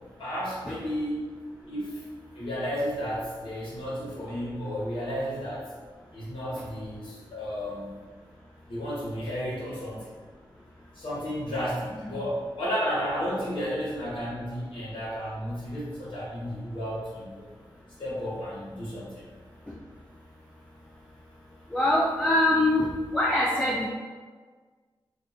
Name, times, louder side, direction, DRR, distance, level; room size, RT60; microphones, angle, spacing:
voice 1, 0.2-1.2 1.7-2.0 2.3-5.7 6.1-7.9 8.7-10.0 10.9-17.5 18.0-19.3, equal, 70° left, -7 dB, 1.2 m, -32 dB
voice 2, 21.7-23.9, left 1 dB, 10° left, -3 dB, 0.4 m, -24 dB
2.6 x 2.5 x 4.2 m, 1.5 s
wide cardioid pair, 120°, 9 cm